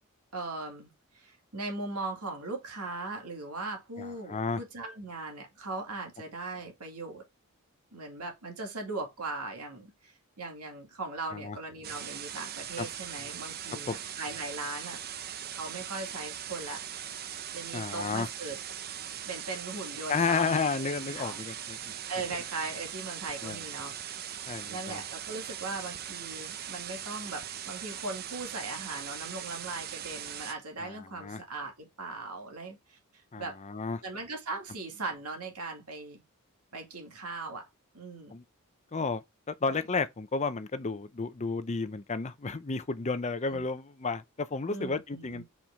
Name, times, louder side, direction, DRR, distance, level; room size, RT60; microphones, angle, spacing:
voice 1, 0.3-7.2 7.9-15.0 15.5-16.8 17.5-18.6 19.2-20.6 21.1-21.4 22.1-24.3 24.7-33.0 33.4-33.6 34.0-36.2 36.7-37.7 37.9-38.4 39.7-39.8 43.5-43.7 44.7-45.4, right 3 dB, 90° right, 2.3 m, -39 dB
voice 2, 4.0-4.6 11.3-11.6 12.8-12.9 13.9-14.0 17.7-18.3 20.1-21.9 23.4-23.6 24.5-25.0 30.8-31.4 33.3-34.0 38.3-38.4 38.9-45.4, left 4 dB, 30° left, 0.6 m, -32 dB
sound 1, 11.8-30.5, right 9 dB, 45° right, 0.6 m, -40 dB
5.8 x 4.9 x 3.4 m
head